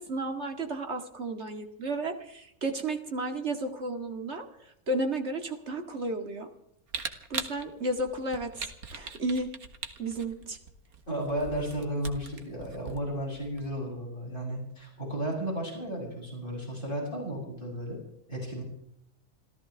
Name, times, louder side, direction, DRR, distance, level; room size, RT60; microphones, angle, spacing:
voice 1, 0.0-4.5 4.9-6.5 7.3-9.5 10.0-10.6, right 2 dB, 45° right, 5 dB, 2.2 m, -33 dB
Camera, 6.9-13.7, right 5 dB, 70° right, 2.0 m, -40 dB
voice 2, 11.1-18.0 18.3-18.6, right 1 dB, 35° left, -3 dB, 8.2 m, -34 dB
27.5 x 15.0 x 3.5 m, 0.79 s
omnidirectional pair, 1.6 m